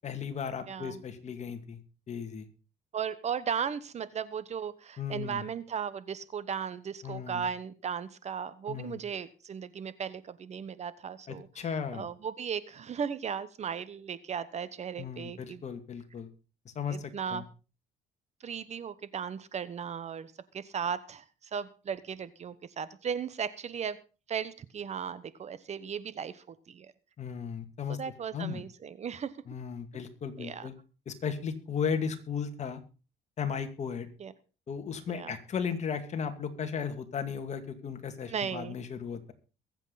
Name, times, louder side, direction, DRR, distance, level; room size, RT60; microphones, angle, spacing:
voice 1, 0.0-1.8 2.1-2.5 5.0-5.5 7.0-7.5 8.7-9.0 11.3-12.1 15.0-16.3 16.7-17.5 27.2-28.0 28.3-28.6 29.5-30.7 31.1-32.8 33.4-34.1 34.7-39.3, left 7 dB, 40° left, 7 dB, 2.3 m, -35 dB
voice 2, 0.7-1.0 2.9-11.5 11.9-15.6 16.9-17.4 18.4-21.2 21.5-24.0 24.3-26.9 28.0-29.3 30.4-30.7 34.2-34.3 35.1-35.4 38.3-38.7, right 7 dB, 40° right, 15 dB, 1.1 m, -36 dB
22.5 x 8.2 x 4.1 m, 0.34 s
cardioid pair, 110°, 17 cm